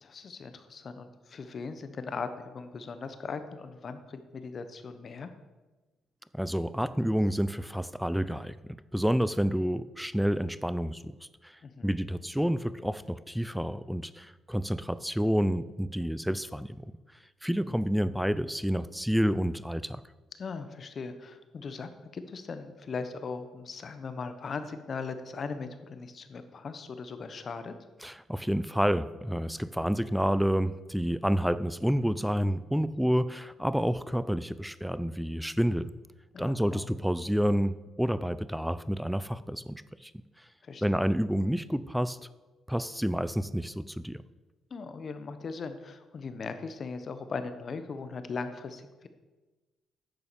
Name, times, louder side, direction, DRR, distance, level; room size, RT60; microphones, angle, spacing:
voice 1, 0.0-5.3 11.6-11.9 17.7-17.8 20.4-27.7 36.3-36.9 40.6-41.0 44.7-49.1, left 4 dB, 45° left, 10 dB, 1.2 m, -39 dB
voice 2, 6.3-16.9 17.4-20.0 28.0-35.9 36.4-40.1 40.4-40.5 40.8-42.2 42.7-44.2, equal, ahead, 16 dB, 0.5 m, -29 dB
10.5 x 7.0 x 6.9 m, 1.2 s
cardioid pair, 90°, 0 cm